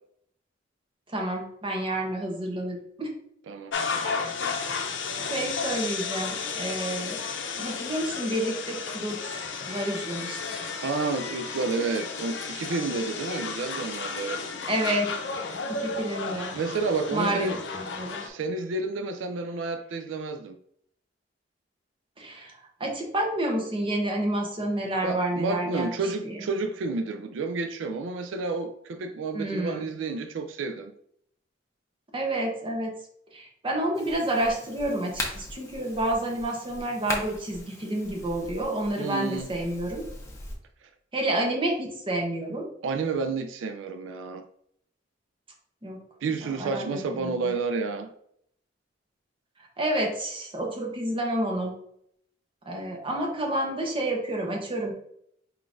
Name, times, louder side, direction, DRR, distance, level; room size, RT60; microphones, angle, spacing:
voice 1, 1.1-3.1 4.0-4.3 5.3-7.2 7.6-9.3 9.7-10.4 14.7-15.1 15.7-16.5 17.1-18.2 22.2-25.9 26.2-26.4 29.3-29.9 32.1-32.9 33.3-40.0 41.1-42.7 45.8-46.0 46.4-47.5 49.8-51.7 52.7-54.9, right 1 dB, 30° right, 0.9 m, -29 dB
sound 1, 3.7-18.3, left 5 dB, 70° left, 0.6 m, -33 dB
voice 2, 10.5-14.4 16.5-17.6 18.2-20.6 25.0-30.9 39.0-39.5 42.8-44.4 46.2-48.1, right 4 dB, 85° right, 0.4 m, -30 dB
sound 2, 33.9-40.6, left 2 dB, 15° left, 0.8 m, -39 dB
4.6 x 3.8 x 2.5 m
head